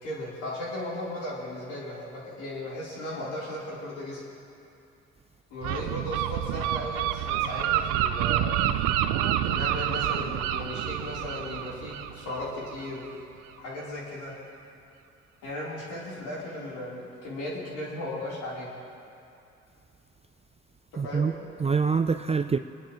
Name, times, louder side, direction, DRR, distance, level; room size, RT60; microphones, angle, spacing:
voice 1, 0.0-4.2 5.5-8.6 9.4-13.0 13.6-14.3 15.4-18.7 20.9-21.3, left 1 dB, 80° left, -7 dB, 3.9 m, -36 dB
Gull seagull, 5.6-13.1, right 11 dB, 90° right, 0.5 m, -28 dB
voice 2, 21.0-22.6, right 5 dB, 20° right, 9 dB, 0.5 m, -26 dB
28.5 x 10.0 x 3.1 m, 2.6 s
supercardioid pair, 55°, 30 cm